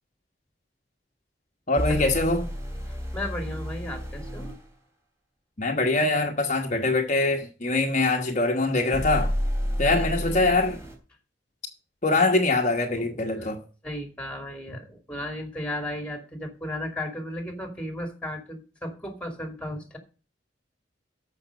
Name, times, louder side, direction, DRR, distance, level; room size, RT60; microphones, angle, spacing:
voice 1, 1.7-2.4 5.6-9.3 9.8-10.8 12.0-13.6, left 2 dB, 45° left, 1.2 m, -23 dB
sound 1, 1.8-4.6 8.9-11.0, equal, 15° right, 3.3 m, -30 dB
voice 2, 3.1-4.5 9.8-10.5 13.0-13.5 13.8-20.0, left 1 dB, 5° left, 2.6 m, -35 dB
14.0 x 5.9 x 5.0 m
head